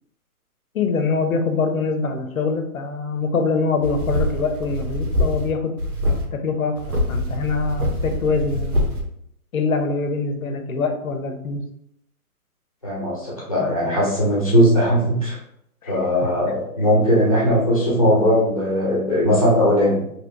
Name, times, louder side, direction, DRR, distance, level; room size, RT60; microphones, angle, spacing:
voice 1, 0.7-5.8 6.3-8.8 9.5-11.6 13.6-13.8 15.8-16.3, left 4 dB, 65° left, 6 dB, 0.6 m, -24 dB
sound 1, 3.8-5.5 5.8-6.2 6.8-9.0, left 1 dB, 75° right, 1.0 m, -24 dB
voice 2, 12.8-15.4 15.9-20.1, equal, 25° left, -6 dB, 0.6 m, -19 dB
3.0 x 2.9 x 2.6 m, 0.75 s
hypercardioid pair, 175°, 45 cm